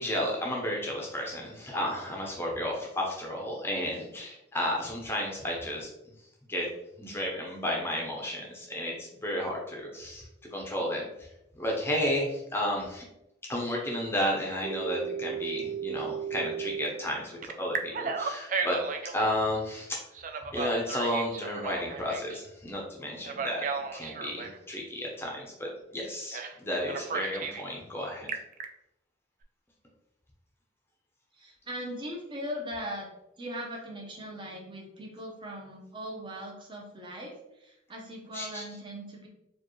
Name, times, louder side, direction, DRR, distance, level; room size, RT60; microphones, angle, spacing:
voice 1, 0.0-5.9 6.5-6.7 7.0-10.2 10.5-11.1 11.6-13.0 13.5-18.8 19.1-20.0 20.5-23.7 23.9-28.3 38.3-38.6, left 1 dB, 10° left, -2 dB, 0.6 m, -32 dB
Telephone, 14.6-16.9 17.4-19.2 20.1-22.4 23.2-24.6 26.3-26.6 26.9-27.7 28.1-28.6, right 6 dB, 40° right, 0.3 m, -34 dB
voice 2, 31.4-33.1 33.4-39.3, equal, 25° right, 0 dB, 0.7 m, -39 dB
4.5 x 2.3 x 3.0 m, 0.87 s
head